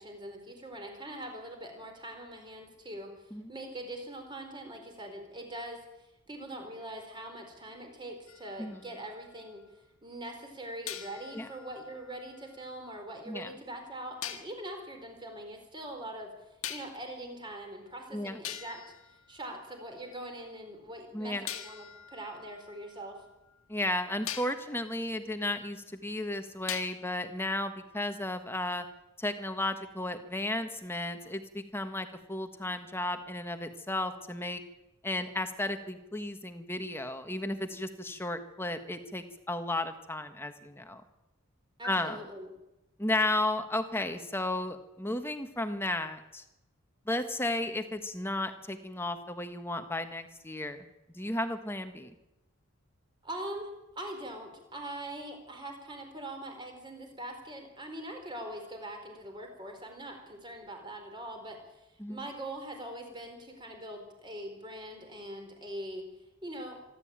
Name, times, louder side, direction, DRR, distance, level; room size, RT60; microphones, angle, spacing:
voice 1, 0.0-3.1 3.5-9.6 10.0-16.3 16.7-18.8 19.3-23.2 41.8-42.5 53.2-53.7 54.0-61.8 62.1-66.1 66.4-66.8, right 1 dB, 20° right, 4 dB, 4.4 m, -42 dB
sound 1, 8.3-9.7 10.9-13.0 14.2-14.6 16.6-17.2 18.0-18.1 18.4-20.1 21.5-23.6 24.3-24.7 26.7-27.3, left 10 dB, 70° left, 1.8 m, -43 dB
voice 2, 21.1-21.5 23.7-28.9 29.2-34.6 35.0-41.0 41.8-42.2 43.0-46.4 47.0-50.9 51.1-52.1 62.0-62.3, left 1 dB, 10° left, 8 dB, 1.4 m, -34 dB
25.5 x 12.5 x 8.9 m, 0.96 s
head